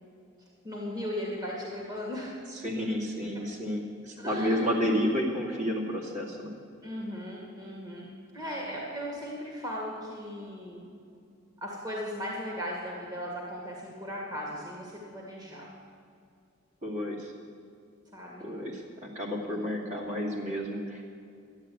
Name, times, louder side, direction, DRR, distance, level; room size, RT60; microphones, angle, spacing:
voice 1, 0.6-2.4 4.2-4.6 6.8-8.1 8.3-10.9 11.6-15.7 18.1-18.5 19.4-19.6, equal, 20° right, -2 dB, 2.1 m, -37 dB
voice 2, 2.5-6.5 16.8-17.3 18.4-21.0, equal, 40° right, -2 dB, 2.4 m, -31 dB
12.0 x 10.5 x 8.5 m, 2.4 s
head